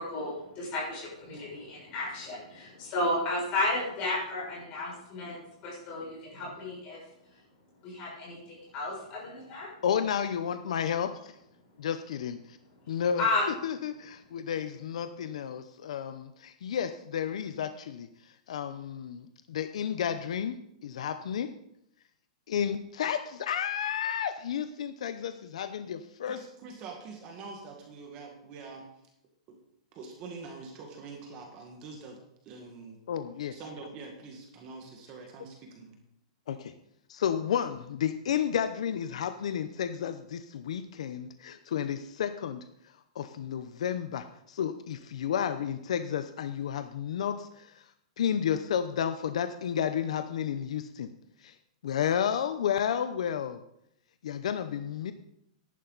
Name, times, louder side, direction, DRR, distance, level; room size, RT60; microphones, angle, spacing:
voice 1, 0.0-7.0 7.8-9.7 13.2-13.5, left 2 dB, 25° left, -4 dB, 6.4 m, -33 dB
voice 2, 9.8-11.4 11.8-12.6 12.9-13.2 13.6-21.5 22.5-26.4 33.1-33.6 36.5-36.7 37.1-51.1 51.4-51.6 51.8-53.6 54.2-55.1, left 8 dB, 65° left, 10 dB, 0.7 m, -32 dB
voice 3, 26.3-28.9 29.5-29.6 29.9-32.2 32.5-33.0 33.5-36.0, right 4 dB, 25° right, 2 dB, 1.7 m, -45 dB
14.0 x 11.0 x 4.0 m, 0.77 s
supercardioid pair, 175°, 4 cm